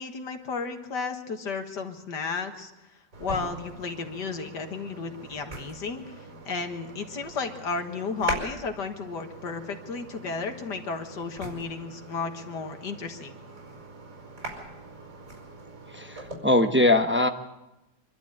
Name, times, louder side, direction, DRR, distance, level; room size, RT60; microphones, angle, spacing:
voice 1, 0.0-13.4, left 4 dB, 65° left, 5 dB, 2.1 m, -33 dB
sound 1, 3.1-16.4, right 2 dB, 45° right, 5.7 m, -42 dB
voice 2, 15.9-17.3, left 1 dB, 10° right, 5 dB, 0.5 m, -22 dB
25.0 x 12.5 x 8.7 m, 0.96 s
omnidirectional pair, 2.0 m